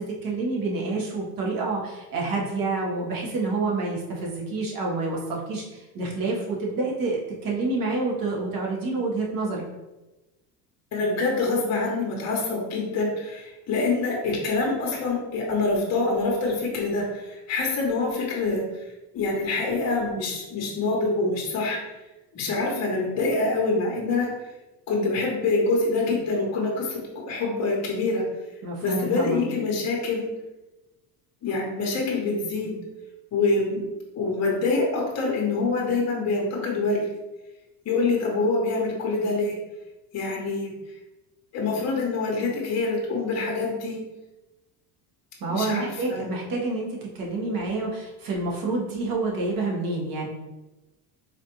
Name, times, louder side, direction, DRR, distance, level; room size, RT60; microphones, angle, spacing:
voice 1, 0.0-9.6 28.6-29.4 45.4-50.3, right 3 dB, 50° right, -2 dB, 1.2 m, -28 dB
voice 2, 10.9-21.8 22.3-24.3 24.9-28.2 28.8-30.3 31.4-32.7 33.3-33.8 34.2-37.1 37.8-39.6 40.1-40.9 41.5-44.0 45.5-46.3, left 3 dB, 35° left, -1 dB, 0.9 m, -25 dB
4.1 x 2.5 x 2.9 m, 1.1 s
cardioid pair, 115°, 43 cm